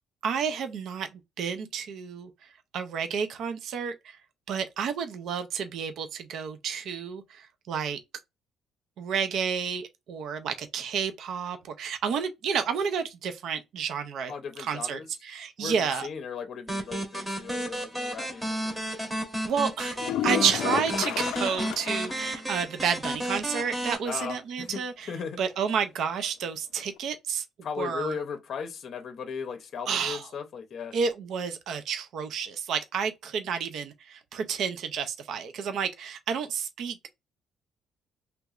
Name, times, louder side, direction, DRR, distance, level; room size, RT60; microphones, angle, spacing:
voice 1, 0.2-1.1 1.4-2.3 2.7-4.2 4.5-8.0 9.0-14.3 14.6-16.1 19.5-20.0 20.2-25.1 25.4-27.4 27.8-28.2 29.9-30.3 30.9-37.1, right 7 dB, 55° right, 0.6 m, -30 dB
voice 2, 14.3-15.1 15.6-18.8 24.0-24.8 25.1-25.4 27.6-30.9, left 6 dB, 45° left, 0.7 m, -37 dB
sound 1, 16.7-24.0, right 1 dB, 10° right, 1.0 m, -32 dB
sound 2, 20.0-22.2 22.6-22.7 23.1-23.2 27.0-27.1, left 12 dB, 85° left, 0.3 m, -31 dB
3.3 x 3.0 x 2.4 m
cardioid pair, 165°, 0 cm